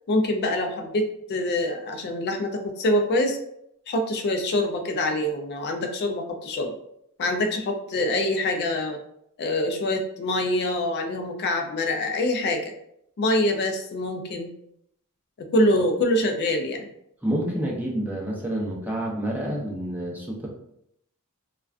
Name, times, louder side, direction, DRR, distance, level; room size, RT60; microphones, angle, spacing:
voice 1, 0.1-3.4 3.9-6.7 7.2-9.0 9.4-12.7 13.2-14.5 15.4-16.9, left 1 dB, 50° left, 4 dB, 0.3 m, -25 dB
voice 2, 17.2-20.5, right 1 dB, 10° right, -3 dB, 0.5 m, -28 dB
2.3 x 2.2 x 2.3 m, 0.75 s
head